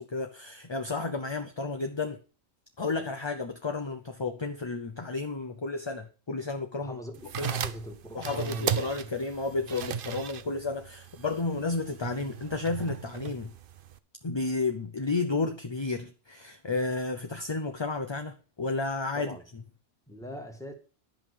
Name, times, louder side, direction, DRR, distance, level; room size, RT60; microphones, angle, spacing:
voice 1, 0.0-2.2 2.8-7.0 7.4-7.5 8.1-13.5 14.2-19.6, left 3 dB, 25° left, 0.7 m, -32 dB
voice 2, 6.8-9.1 19.1-19.4 20.1-20.7, equal, 5° left, 1.9 m, -41 dB
sound 1, 7.1-14.0, right 8 dB, 55° right, 0.8 m, -36 dB
11.0 x 5.6 x 6.9 m
omnidirectional pair, 1.2 m